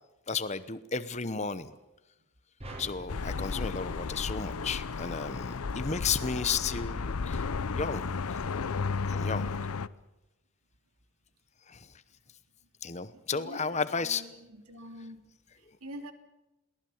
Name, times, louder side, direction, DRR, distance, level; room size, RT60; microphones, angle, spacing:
voice 1, 0.3-1.7 2.8-7.4 7.7-8.4 9.1-9.5 11.7-11.9 12.8-14.2, left 5 dB, 30° left, 14 dB, 0.9 m, -33 dB
sound 1, 2.6-5.0, right 1 dB, 30° right, 3.9 m, -47 dB
sound 2, 3.1-9.9, left 4 dB, 85° left, 0.7 m, -33 dB
voice 2, 13.3-15.2 15.8-16.1, equal, 90° right, 7 dB, 2.9 m, -45 dB
22.5 x 18.5 x 7.2 m, 0.96 s
head